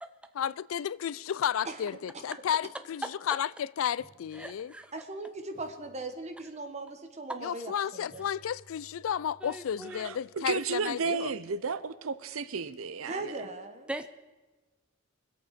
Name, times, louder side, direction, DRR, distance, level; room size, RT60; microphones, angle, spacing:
voice 1, 0.3-4.7 7.4-11.3, left 9 dB, 70° left, 0.3 m, -32 dB
sound 1, 4.0-5.2 5.5-6.8 8.1-12.0, right 1 dB, 45° left, 4.9 m, -62 dB
voice 2, 4.4-4.9 9.4-10.1 13.9-14.1, right 1 dB, 5° right, 0.6 m, -40 dB
voice 3, 4.9-8.2 13.0-13.9, right 2 dB, 35° right, 1.5 m, -39 dB
voice 4, 10.0-13.3, right 5 dB, 80° right, 0.7 m, -33 dB
23.5 x 8.4 x 5.1 m
head